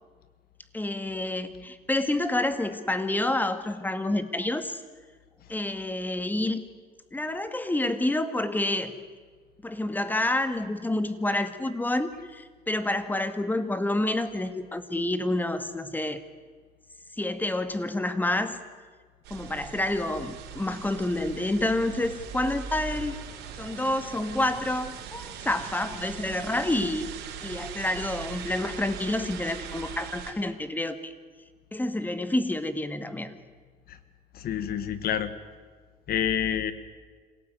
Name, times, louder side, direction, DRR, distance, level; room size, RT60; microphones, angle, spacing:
voice 1, 0.7-4.8 5.5-6.7 7.1-8.9 9.6-16.2 17.2-18.6 19.3-23.2 23.6-27.1 27.4-31.1 31.7-33.4, left 1 dB, 10° left, 11 dB, 2.0 m, -28 dB
sound 1, 19.2-30.3, right 8 dB, 85° right, 4.7 m, -40 dB
voice 2, 34.3-35.3 36.1-36.7, left 9 dB, 65° left, 13 dB, 1.7 m, -28 dB
26.5 x 17.5 x 9.4 m, 1.5 s
cardioid pair, 110°, 17 cm